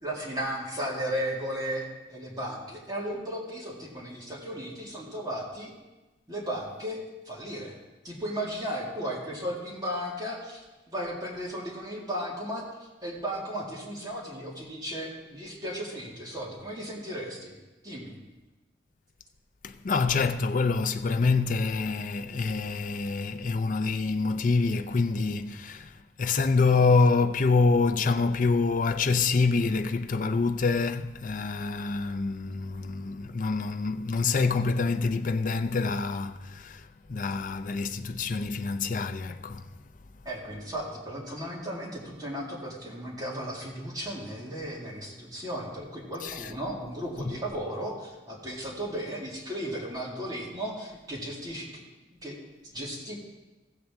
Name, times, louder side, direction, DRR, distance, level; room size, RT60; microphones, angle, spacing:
voice 1, 0.0-5.7 6.3-7.8 8.0-17.6 17.8-18.2 40.3-51.8 52.2-52.4 52.7-53.2, equal, 20° right, 2.0 m, -35 dB
voice 2, 19.6-39.6 46.2-46.5, left 4 dB, 50° left, 0.5 m, -26 dB
15.5 x 7.6 x 3.5 m
head